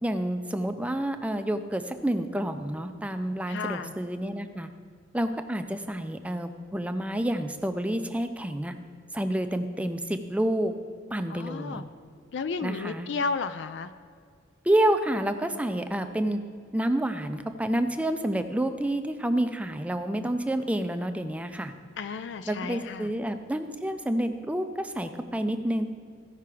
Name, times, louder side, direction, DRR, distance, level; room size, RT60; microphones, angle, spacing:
voice 1, 0.0-4.7 5.1-8.7 9.1-10.7 11.1-11.8 12.6-13.1 14.6-16.4 16.7-21.7 22.5-25.9, right 1 dB, 5° right, 8 dB, 0.4 m, -29 dB
voice 2, 3.5-3.9 11.3-11.9 12.3-13.9 22.0-23.1, left 4 dB, 65° left, 12 dB, 0.4 m, -33 dB
14.5 x 5.7 x 4.8 m, 2.2 s
head